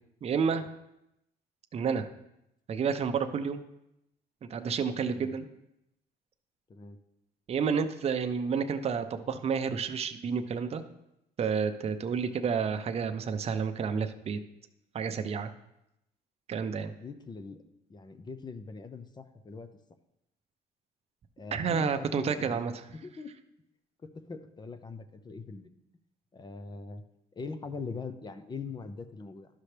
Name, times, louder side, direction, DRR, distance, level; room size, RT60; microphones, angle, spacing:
voice 1, 0.2-0.7 1.7-2.1 2.7-3.6 4.5-5.5 7.5-10.8 11.4-14.4 14.9-15.5 16.5-16.9 21.5-22.7, right 6 dB, 35° right, 8 dB, 0.6 m, -30 dB
voice 2, 17.0-17.6 17.9-19.7 21.4-22.6 23.0-23.3 24.0-25.7 26.3-27.0 27.4-29.5, left 4 dB, 25° left, 10 dB, 0.6 m, -42 dB
12.0 x 5.7 x 3.3 m, 0.85 s
cardioid pair, 110°, 17 cm